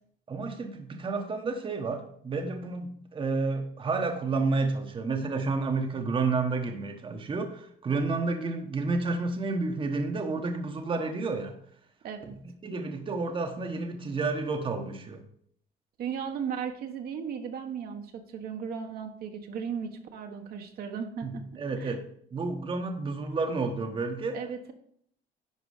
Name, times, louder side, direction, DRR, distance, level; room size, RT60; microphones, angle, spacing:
voice 1, 0.3-11.6 12.6-15.2 21.2-22.0 22.3-24.4, right 3 dB, 30° right, 5 dB, 1.1 m, -30 dB
voice 2, 12.0-12.4 16.0-21.4 21.7-22.0 24.3-24.7, right 7 dB, 65° right, 4 dB, 1.3 m, -36 dB
11.0 x 4.8 x 4.9 m, 0.66 s
cardioid pair, 115°, 17 cm